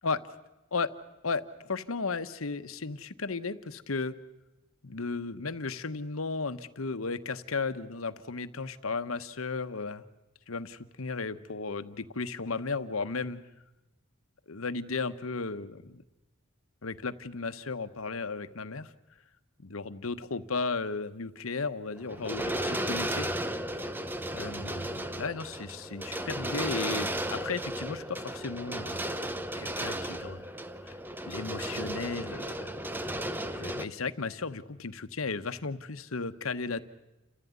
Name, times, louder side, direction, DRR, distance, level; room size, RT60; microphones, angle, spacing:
voice 1, 1.2-4.2 4.8-10.1 10.5-13.4 14.5-16.0 16.8-18.9 19.6-23.6 24.3-29.0 29.6-30.5 30.8-31.0 31.3-32.7 33.5-36.8, left 4 dB, 90° left, 12 dB, 1.1 m, -35 dB
sound 1, 22.0-33.9, right 1 dB, 10° right, 0.9 m, -34 dB
29.5 x 15.0 x 9.5 m, 1.0 s
head